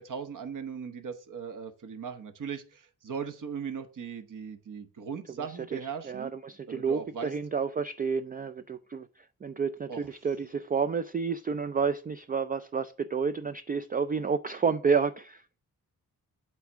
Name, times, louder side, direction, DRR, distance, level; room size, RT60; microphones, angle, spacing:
voice 1, 0.0-6.3 6.7-7.3 9.9-10.0, right 6 dB, 60° right, 1.2 m, -38 dB
voice 2, 5.3-15.5, right 5 dB, 25° right, 0.3 m, -30 dB
8.2 x 3.5 x 6.2 m
cardioid pair, 90°, 36 cm